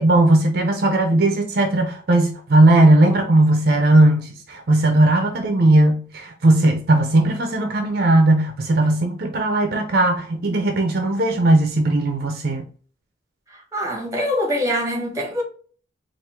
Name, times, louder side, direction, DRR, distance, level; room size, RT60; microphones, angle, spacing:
voice 1, 0.0-12.6, right 2 dB, 50° right, 0.6 m, -17 dB
voice 2, 13.7-15.4, equal, 15° right, 1.2 m, -23 dB
4.4 x 2.5 x 3.5 m
head